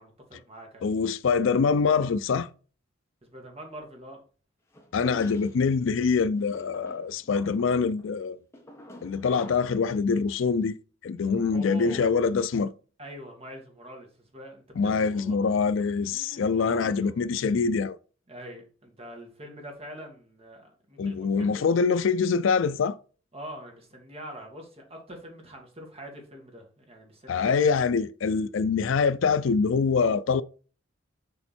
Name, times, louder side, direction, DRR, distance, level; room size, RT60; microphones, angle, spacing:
voice 1, 0.0-0.9 3.3-4.2 11.2-12.1 13.0-15.4 16.0-17.2 18.3-21.7 23.3-27.9, equal, 30° right, 2.1 m, -44 dB
voice 2, 0.8-2.5 4.9-8.4 9.0-10.8 11.0-12.7 14.8-18.0 21.0-23.0 27.3-30.4, left 5 dB, 70° left, 0.4 m, -24 dB
sound 1, 4.7-5.7 6.4-9.8, left 1 dB, 15° left, 1.6 m, -49 dB
7.1 x 4.3 x 4.3 m
head